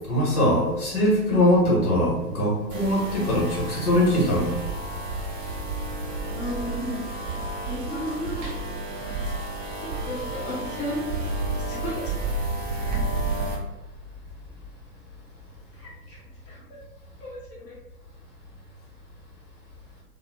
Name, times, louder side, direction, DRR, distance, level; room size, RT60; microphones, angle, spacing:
voice 1, 0.1-4.6, equal, 65° left, -4 dB, 1.3 m, -22 dB
sound 1, 2.7-13.6, right 2 dB, 30° right, 0.6 m, -31 dB
voice 2, 6.3-7.1 7.6-8.5 9.1-9.3 9.8-11.0 11.3-12.1 15.7-16.2 16.5-16.8 17.2-17.8, equal, 40° left, -7 dB, 0.9 m, -34 dB
2.7 x 2.1 x 3.1 m, 1.0 s
figure-of-eight pair, 105°, 48 cm